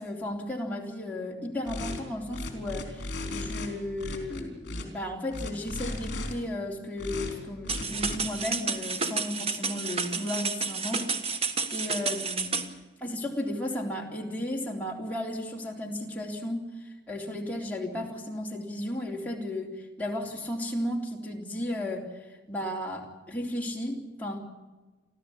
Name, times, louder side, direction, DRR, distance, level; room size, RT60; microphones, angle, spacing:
voice 1, 0.0-12.6 13.0-16.7 17.1-19.7 20.0-22.1 22.5-24.4, left 1 dB, 10° left, -2 dB, 3.5 m, -34 dB
sound 1, 1.7-2.0 2.3-3.7 4.0-4.8 5.3-6.3 7.0-7.3 7.6-8.2, left 2 dB, 60° left, 4.0 m, -35 dB
sound 2, 7.7-12.7, right 4 dB, 30° right, 1.4 m, -31 dB
29.5 x 12.0 x 8.7 m, 1.2 s
head